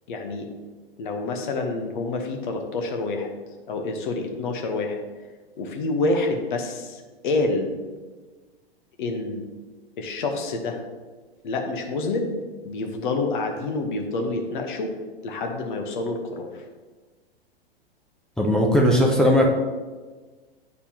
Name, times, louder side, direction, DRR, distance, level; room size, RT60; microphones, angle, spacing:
voice 1, 0.1-0.5 1.0-3.3 3.7-5.0 5.6-7.7 9.0-9.4 10.0-10.8 11.4-12.3 12.6-14.9 15.2-16.6, left 3 dB, 50° left, 4 dB, 1.1 m, -27 dB
voice 2, 18.4-19.5, equal, ahead, -1 dB, 0.3 m, -18 dB
9.8 x 4.1 x 2.9 m, 1.3 s
figure-of-eight pair, 105°, 31 cm